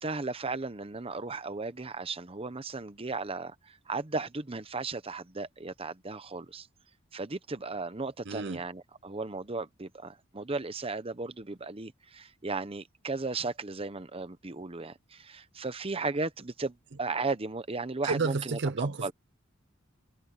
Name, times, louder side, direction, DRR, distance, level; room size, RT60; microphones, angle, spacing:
voice 1, 0.0-6.7 7.1-19.1, right 3 dB, 25° right, 0.9 m, -35 dB
voice 2, 8.3-8.6 18.0-19.1, right 4 dB, 55° right, 0.7 m, -31 dB
head